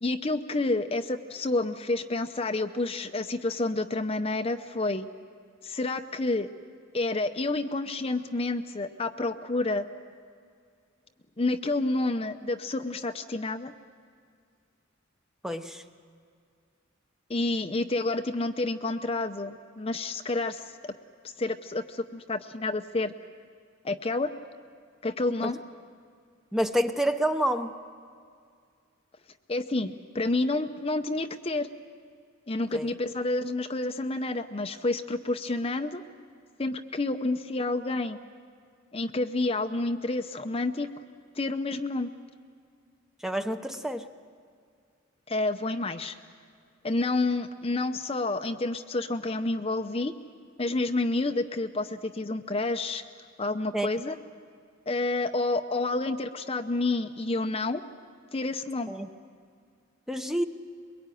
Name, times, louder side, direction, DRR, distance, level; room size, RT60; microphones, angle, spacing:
voice 1, 0.0-5.1 5.6-6.5 6.9-9.9 11.4-13.7 17.3-20.9 21.2-23.1 23.8-24.3 25.0-25.6 29.5-31.7 32.5-36.0 36.6-38.2 38.9-40.9 41.3-42.1 45.3-46.2 46.8-50.1 50.6-53.0 53.4-54.2 54.9-57.8 58.3-58.9, left 2 dB, 30° left, 7 dB, 0.7 m, -29 dB
voice 2, 15.4-15.8 25.4-25.5 26.5-27.7 32.7-32.9 43.2-44.1 53.7-53.9 58.9-59.1 60.1-60.5, equal, ahead, 7 dB, 0.8 m, -28 dB
23.0 x 22.0 x 9.2 m, 2.2 s
head